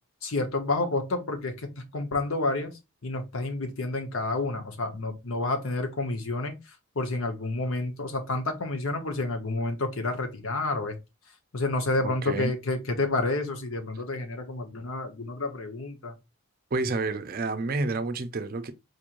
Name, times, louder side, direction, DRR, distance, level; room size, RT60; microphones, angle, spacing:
voice 1, 0.2-10.9 11.5-16.1, left 2 dB, 70° left, 1.0 m, -30 dB
voice 2, 12.0-12.5 16.7-18.7, right 3 dB, 45° right, 0.5 m, -29 dB
4.3 x 3.1 x 2.5 m
head